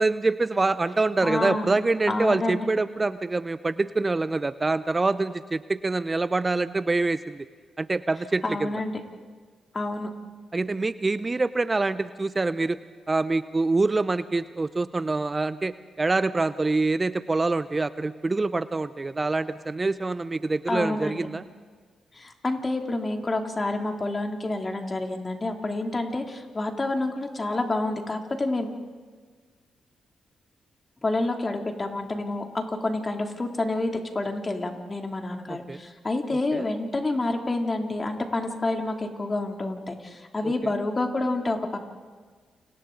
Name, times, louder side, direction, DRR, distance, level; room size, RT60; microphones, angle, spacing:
voice 1, 0.0-7.5 7.8-8.7 10.5-12.8 13.1-21.4 35.7-35.8 36.5-36.6 40.4-40.5, right 3 dB, 30° right, 15 dB, 0.6 m, -25 dB
voice 2, 1.2-1.8 2.1-2.7 8.4-8.9 9.7-10.1 20.7-21.2 22.1-28.7 31.0-41.8, left 2 dB, 35° left, 3 dB, 2.7 m, -28 dB
29.0 x 27.0 x 3.9 m, 1.5 s
hypercardioid pair, 40°, 0 cm